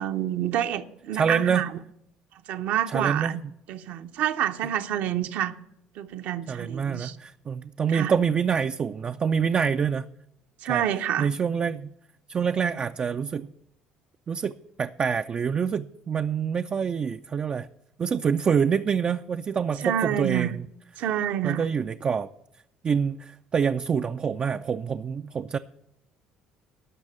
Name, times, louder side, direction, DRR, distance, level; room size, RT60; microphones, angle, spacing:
voice 1, 0.0-1.7 2.5-3.4 3.7-5.5 6.0-7.2 7.9-8.1 10.6-11.3 19.8-20.5 21.0-21.7, right 11 dB, 70° right, 0.7 m, -28 dB
voice 2, 1.1-1.6 2.9-3.4 6.5-10.1 10.7-10.8 11.2-11.9 12.3-13.5 14.3-17.7 18.0-20.5 21.4-22.3 22.8-25.6, right 6 dB, 40° right, 0.4 m, -26 dB
12.0 x 5.9 x 8.5 m
hypercardioid pair, 65°, 3 cm